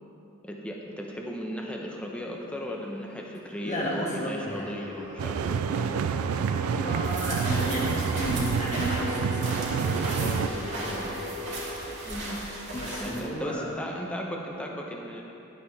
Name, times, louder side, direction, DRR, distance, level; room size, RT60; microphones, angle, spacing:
voice 1, 0.4-6.0 12.1-12.4 13.0-15.2, equal, 5° left, -1 dB, 0.9 m, -36 dB
sound 1, 3.3-13.6, equal, 40° right, 1.2 m, -39 dB
voice 2, 3.6-4.7 6.7-11.2 12.7-13.7, equal, 35° left, -4 dB, 1.6 m, -33 dB
sound 2, 5.2-10.5, right 7 dB, 85° right, 0.3 m, -28 dB
sound 3, 7.0-13.2, right 2 dB, 60° right, 2.0 m, -36 dB
11.5 x 8.1 x 3.4 m, 2.8 s
head